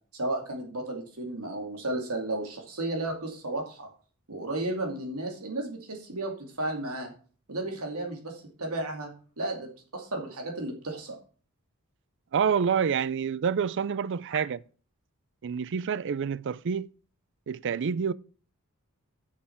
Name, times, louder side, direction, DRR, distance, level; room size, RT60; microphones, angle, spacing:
voice 1, 0.1-3.9 4.3-7.1 7.5-11.2 14.3-14.4, right 2 dB, 75° right, 2.5 m, -33 dB
voice 2, 12.3-14.6 15.4-16.9 17.5-18.1, right 7 dB, 55° right, 0.4 m, -27 dB
9.1 x 6.7 x 5.8 m
head